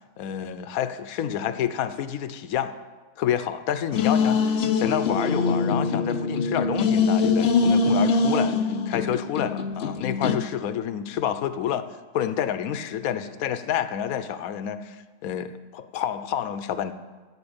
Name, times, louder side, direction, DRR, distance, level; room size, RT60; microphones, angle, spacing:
voice 1, 0.2-2.7 3.2-8.5 8.9-11.9 12.1-15.0 15.2-16.9, left 9 dB, 85° left, 12 dB, 1.1 m, -28 dB
sound 1, 3.9-10.4, left 4 dB, 55° left, 0.8 m, -23 dB
14.0 x 4.8 x 8.7 m, 1.3 s
omnidirectional pair, 1.5 m